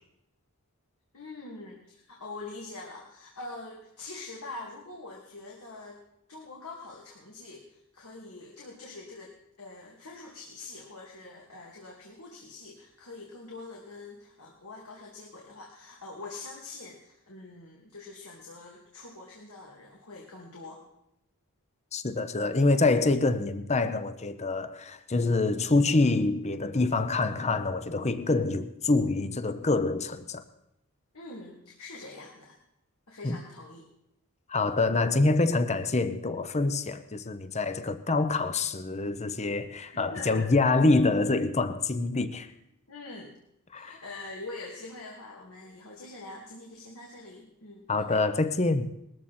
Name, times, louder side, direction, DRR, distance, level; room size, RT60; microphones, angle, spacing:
voice 1, 1.1-6.0 6.3-20.8 31.1-32.6 33.1-33.8 39.9-40.5 42.9-43.4 43.7-48.2, left 3 dB, 70° left, 2.7 m, -44 dB
voice 2, 21.9-30.4 33.2-33.4 34.5-42.5 43.7-43.9 47.9-48.9, left 3 dB, 30° left, 0.9 m, -26 dB
20.0 x 14.5 x 4.4 m
head